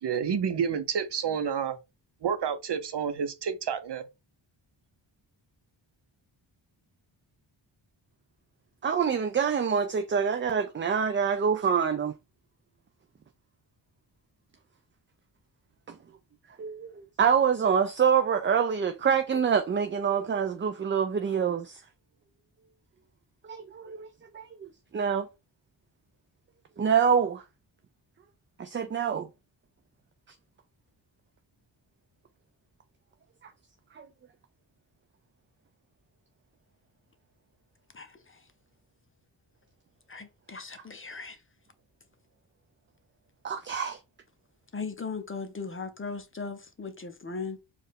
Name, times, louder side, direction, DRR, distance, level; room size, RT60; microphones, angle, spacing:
voice 1, 0.0-1.8 2.2-4.0, right 7 dB, 60° right, 0.8 m, -29 dB
voice 2, 8.8-12.1 16.6-21.8 23.5-24.1 24.3-25.3 26.8-27.4 28.6-29.3 34.0-34.1 43.4-44.0, right 7 dB, 25° right, 0.4 m, -26 dB
voice 3, 37.9-38.4 40.1-41.4 44.7-47.6, left 4 dB, 25° left, 0.6 m, -38 dB
4.4 x 2.5 x 3.4 m
cardioid pair, 70°, 46 cm